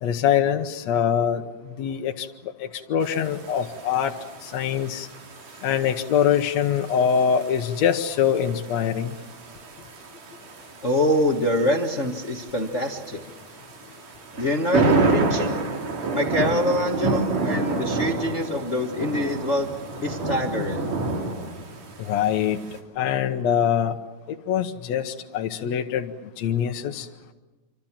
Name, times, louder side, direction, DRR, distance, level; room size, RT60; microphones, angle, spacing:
voice 1, 0.0-1.4 1.8-2.3 2.6-4.1 4.4-5.1 5.6-9.1 22.0-22.6 23.0-23.9 24.5-26.1 26.4-27.1, left 8 dB, 65° left, 4 dB, 2.1 m, -23 dB
sound 1, 3.0-22.8, right 3 dB, 80° right, 4.5 m, -30 dB
voice 2, 10.8-13.2 14.4-15.6 16.1-19.7 20.0-20.9, left 1 dB, 35° left, 3 dB, 1.1 m, -25 dB
27.5 x 25.5 x 7.4 m, 1.2 s
omnidirectional pair, 3.6 m